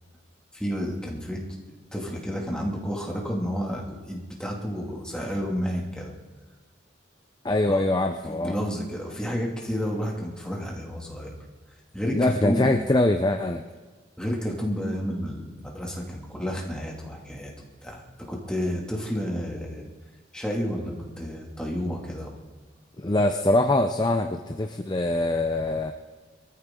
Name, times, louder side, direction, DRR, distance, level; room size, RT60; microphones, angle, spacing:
voice 1, 0.5-1.4 1.9-6.1 7.7-7.8 8.2-11.4 11.9-12.7 14.2-17.5 17.8-19.8 20.3-22.4, equal, 5° left, -2 dB, 2.4 m, -31 dB
voice 2, 7.4-8.6 12.1-13.6 23.0-25.9, left 2 dB, 20° left, 6 dB, 0.5 m, -23 dB
23.5 x 14.0 x 3.8 m, 1.4 s
head